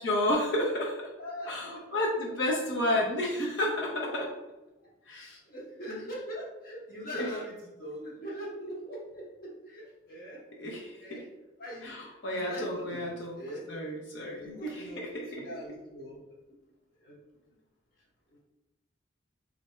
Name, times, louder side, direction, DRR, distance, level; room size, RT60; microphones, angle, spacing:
voice 1, 0.0-0.9 1.5-4.3 5.1-5.4 5.9-6.0 7.1-7.3 10.6-11.2 11.8-13.4 13.7-15.4, left 1 dB, 65° left, -2 dB, 0.7 m, -31 dB
voice 2, 1.2-2.4 2.9-3.1 4.0-4.3 5.4-11.2 11.6-13.7 14.3-15.0 15.3-16.2 17.0-17.2, equal, 45° left, -4 dB, 1.0 m, -42 dB
3.2 x 2.6 x 4.3 m, 1.1 s
head